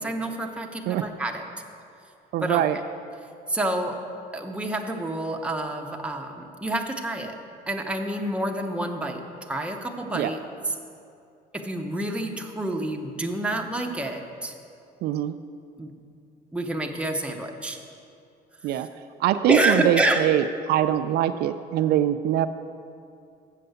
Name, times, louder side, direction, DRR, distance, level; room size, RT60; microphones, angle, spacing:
voice 1, 0.0-1.4 2.4-2.6 3.5-4.0 4.3-7.4 7.7-10.4 11.5-14.5 15.8-15.9 16.5-17.8 19.5-20.2, right 1 dB, 5° right, 2 dB, 0.9 m, -28 dB
voice 2, 2.3-2.8 10.1-10.3 15.0-15.4 18.6-18.9 19.2-22.5, right 11 dB, 75° right, 10 dB, 0.4 m, -23 dB
7.6 x 6.6 x 8.0 m, 2.5 s
cardioid pair, 110°, 17 cm